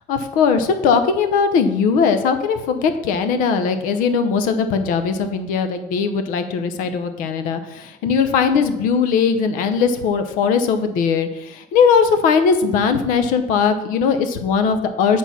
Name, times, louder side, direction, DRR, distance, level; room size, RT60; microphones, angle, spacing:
voice 1, 0.1-15.2, left 6 dB, 85° left, 9 dB, 0.8 m, -19 dB
8.3 x 4.4 x 5.8 m, 0.96 s
cardioid pair, 175°, 13 cm